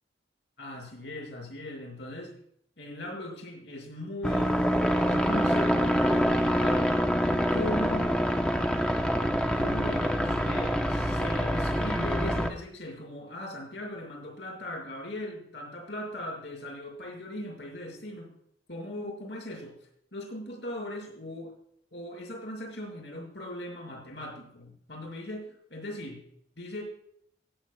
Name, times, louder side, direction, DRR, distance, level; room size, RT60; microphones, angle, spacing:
voice 1, 0.6-2.3 2.8-4.5 5.0-6.9 7.2-8.1 9.4-18.3 18.7-19.8 20.1-21.5 21.9-26.2 26.6-26.8, left 1 dB, 75° left, -1 dB, 5.5 m, -39 dB
sound 1, 4.2-12.5, equal, 5° left, 1.0 m, -26 dB
22.0 x 8.3 x 2.4 m, 0.67 s
head